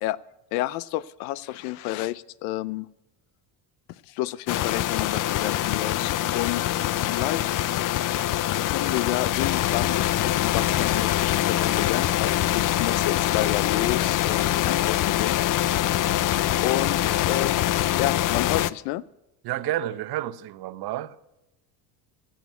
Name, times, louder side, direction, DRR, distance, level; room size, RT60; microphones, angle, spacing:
voice 1, 0.5-2.9 4.1-7.6 8.6-15.4 16.6-17.6 17.9-19.0, left 16 dB, 90° left, 0.7 m, -30 dB
sound 1, 4.5-18.7, left 13 dB, 50° left, 0.6 m, -24 dB
voice 2, 19.4-21.2, right 13 dB, 60° right, 0.9 m, -30 dB
15.5 x 7.3 x 9.2 m
supercardioid pair, 100°, 43 cm